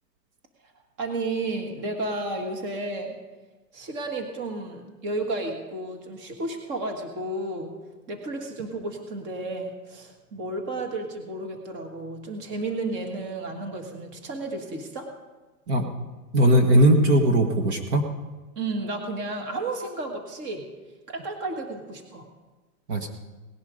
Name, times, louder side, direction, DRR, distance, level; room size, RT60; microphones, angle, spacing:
voice 1, 1.0-3.1 3.7-7.7 8.1-15.1 18.5-20.7 21.1-22.2, right 2 dB, 25° right, 4 dB, 1.6 m, -32 dB
voice 2, 16.3-18.0 22.9-23.1, right 1 dB, 40° right, 4 dB, 1.5 m, -19 dB
18.5 x 10.5 x 5.0 m, 1.2 s
hypercardioid pair, 165°, 48 cm